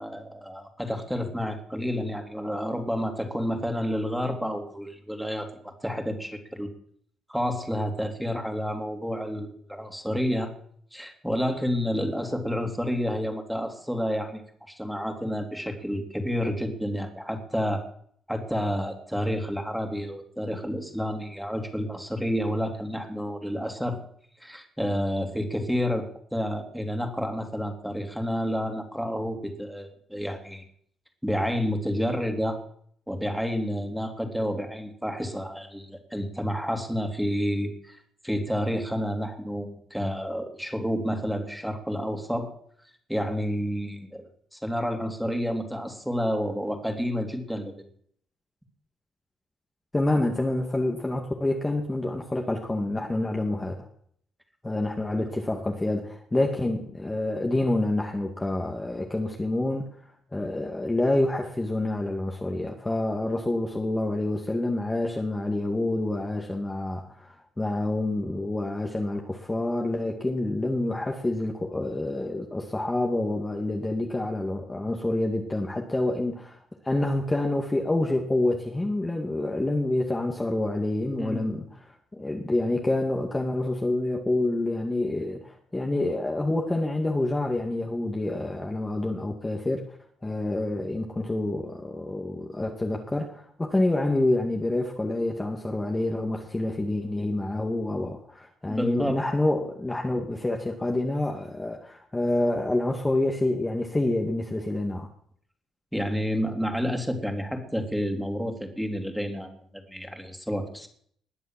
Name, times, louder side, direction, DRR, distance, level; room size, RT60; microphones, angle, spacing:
voice 1, 0.0-6.7 7.3-10.5 10.9-14.4 14.7-17.8 18.3-24.0 24.4-30.6 31.2-32.6 33.1-42.5 43.1-47.7 55.1-55.3 81.2-81.5 98.7-99.2 105.9-110.9, equal, ahead, 4 dB, 3.2 m, -30 dB
voice 2, 49.9-53.9 54.6-59.9 60.3-76.6 76.8-90.0 90.2-105.1, left 2 dB, 15° left, 1 dB, 2.1 m, -27 dB
20.5 x 7.4 x 7.6 m, 0.64 s
cardioid pair, 90°, 0 cm